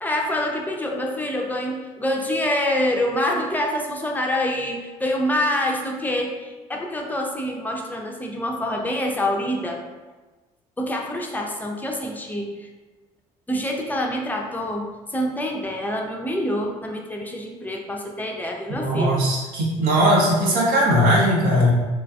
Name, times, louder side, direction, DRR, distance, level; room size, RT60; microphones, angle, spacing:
voice 1, 0.0-9.8 10.8-12.7 13.5-19.2, left 1 dB, 10° left, 1 dB, 0.5 m, -26 dB
voice 2, 18.7-21.7, equal, 65° right, -3 dB, 0.7 m, -19 dB
3.0 x 2.4 x 2.3 m, 1.2 s
hypercardioid pair, 55°, 17 cm